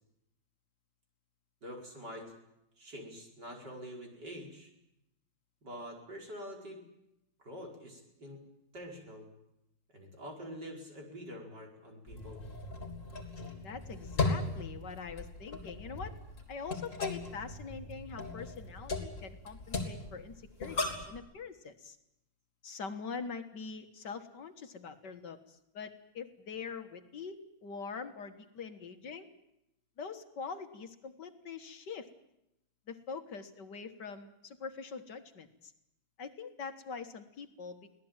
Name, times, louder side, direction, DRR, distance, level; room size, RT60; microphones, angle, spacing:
voice 1, 1.6-2.3 2.8-4.7 5.6-6.8 7.4-8.4 8.7-9.3 9.9-12.4, equal, 50° right, 0 dB, 5.5 m, -46 dB
sound 1, 12.1-21.2, left 3 dB, 35° left, 3.8 m, -38 dB
voice 2, 13.6-16.1 16.5-22.0 22.6-29.3 30.0-32.1 32.9-35.7 36.2-38.0, left 5 dB, 55° left, 8 dB, 2.0 m, -44 dB
25.0 x 17.5 x 8.9 m, 0.86 s
omnidirectional pair, 2.3 m